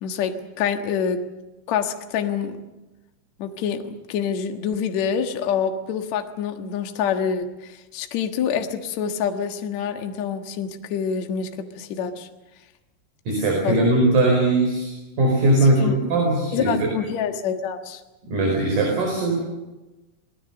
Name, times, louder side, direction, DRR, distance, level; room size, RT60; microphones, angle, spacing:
voice 1, 0.0-0.3 0.6-1.2 1.7-2.6 3.4-7.5 7.9-11.5 11.7-12.3 13.6-13.9 15.8-15.9 16.5-18.0, left 7 dB, 90° left, 5 dB, 1.5 m, -26 dB
voice 2, 13.3-16.9 18.3-19.4, right 2 dB, 40° right, 0 dB, 6.0 m, -20 dB
29.5 x 19.5 x 6.8 m, 1.1 s
omnidirectional pair, 5.8 m